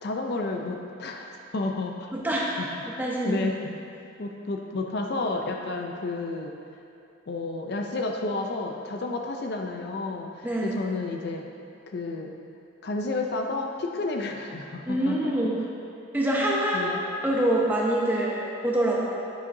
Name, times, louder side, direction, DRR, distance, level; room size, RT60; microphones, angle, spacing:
voice 1, 0.0-2.1 2.6-2.7 3.2-3.8 4.2-6.5 7.3-11.5 11.9-12.3 12.8-15.3 16.5-17.0, left 3 dB, 50° left, 2 dB, 0.5 m, -31 dB
voice 2, 2.1-2.5 2.8-3.4 10.4-10.8 14.9-15.6 16.1-19.0, right 1 dB, 10° right, -4 dB, 0.9 m, -25 dB
9.9 x 7.2 x 2.7 m, 2.6 s
head